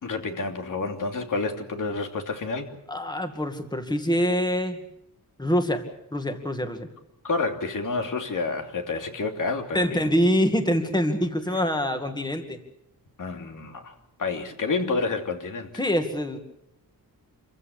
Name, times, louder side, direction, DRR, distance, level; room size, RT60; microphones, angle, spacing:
voice 1, 0.0-2.7 7.2-10.1 11.5-11.6 13.2-13.9 14.2-15.7, left 3 dB, 60° left, 4 dB, 2.9 m, -29 dB
voice 2, 2.9-4.8 5.4-5.8 6.1-6.9 9.7-12.6 15.8-16.4, equal, 10° left, 6 dB, 2.2 m, -25 dB
26.5 x 15.5 x 8.2 m, 0.84 s
wide cardioid pair, 130°, 36 cm